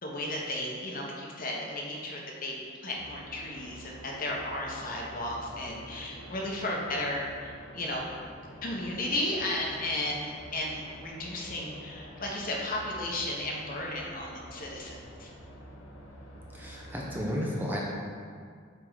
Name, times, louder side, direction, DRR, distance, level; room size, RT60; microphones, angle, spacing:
voice 1, 0.0-8.1 8.6-15.3, left 1 dB, 45° left, -2 dB, 1.1 m, -34 dB
sound 1, 2.9-17.3, equal, 85° left, 1.2 m, -48 dB
voice 2, 16.5-17.8, equal, 10° right, -3 dB, 0.7 m, -33 dB
7.8 x 3.8 x 4.8 m, 2.1 s
head